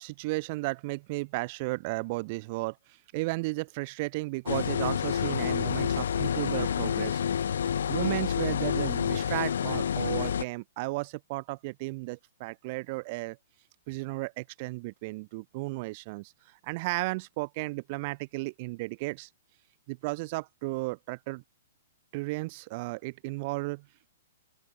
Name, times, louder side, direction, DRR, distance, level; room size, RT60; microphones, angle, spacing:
voice 1, 0.0-2.8 3.1-7.2 7.9-13.4 13.9-16.3 16.6-19.3 19.9-21.4 22.1-23.8, right 24 dB, 45° right, 0.9 m, -34 dB
sound 1, 4.5-10.4, left 8 dB, 75° left, 1.3 m, -28 dB
open air
hypercardioid pair, 135°, 0 cm